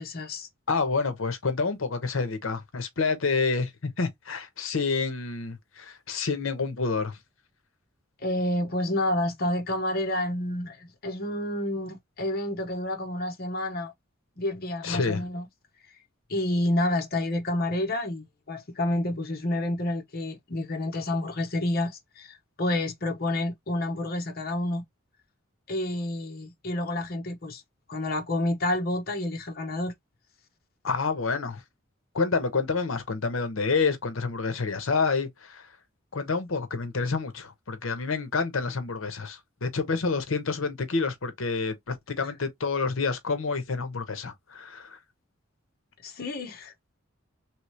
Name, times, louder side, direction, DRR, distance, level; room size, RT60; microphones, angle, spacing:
voice 1, 0.0-0.5 8.2-13.9 14.4-15.5 16.3-24.8 25.7-27.6 27.9-29.9 42.2-42.3 46.0-46.7, left 1 dB, 50° left, 0.9 m, -29 dB
voice 2, 0.7-3.7 4.0-7.2 14.8-15.2 30.8-31.6 32.1-35.7 36.1-45.0, left 4 dB, 70° left, 0.9 m, -28 dB
3.2 x 3.0 x 3.0 m
head